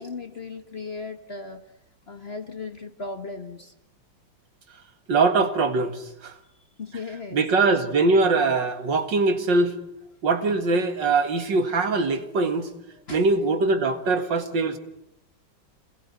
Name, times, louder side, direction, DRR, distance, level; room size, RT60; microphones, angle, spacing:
voice 1, 0.0-1.7 2.1-3.7 6.8-7.4 13.1-13.2, left 4 dB, 35° left, 7 dB, 1.5 m, -36 dB
voice 2, 5.1-6.3 7.3-9.8 10.2-12.7 13.1-14.8, right 3 dB, 65° right, 8 dB, 2.5 m, -22 dB
27.0 x 20.5 x 9.6 m, 0.84 s
omnidirectional pair, 2.2 m